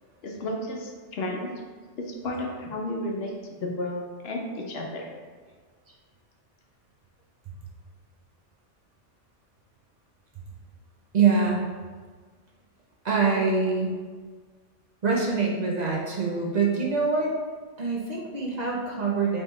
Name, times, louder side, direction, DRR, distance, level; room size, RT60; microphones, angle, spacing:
voice 1, 0.2-1.5 2.1-5.1, left 1 dB, 65° left, 1 dB, 0.8 m, -32 dB
voice 2, 11.1-11.6 13.0-13.9 15.0-17.3 17.8-19.4, right 4 dB, 50° right, -2 dB, 0.6 m, -24 dB
4.1 x 3.6 x 3.0 m, 1.5 s
omnidirectional pair, 1.2 m